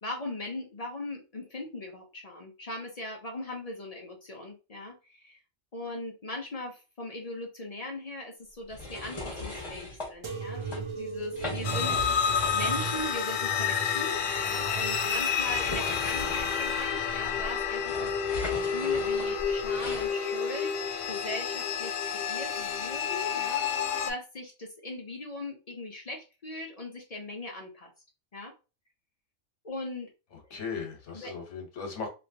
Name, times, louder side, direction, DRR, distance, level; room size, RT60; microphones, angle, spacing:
voice 1, 0.0-5.4 5.7-20.7 21.1-23.7 24.1-27.9 28.3-28.5 29.6-30.1 31.1-31.3, left 1 dB, 45° left, 0.5 m, -39 dB
sound 1, 8.7-10.1 10.5-10.8 11.2-13.1 13.4-13.5 14.5-20.1, left 2 dB, 25° left, 1.0 m, -39 dB
sound 2, 10.2-17.4 18.0-18.7 19.5-20.0 21.0-21.1, right 6 dB, 35° right, 0.5 m, -40 dB
sound 3, 11.6-24.1, left 7 dB, 85° left, 0.9 m, -29 dB
voice 2, 30.3-32.1, left 5 dB, 70° left, 1.2 m, -37 dB
3.0 x 2.6 x 2.6 m
omnidirectional pair, 1.3 m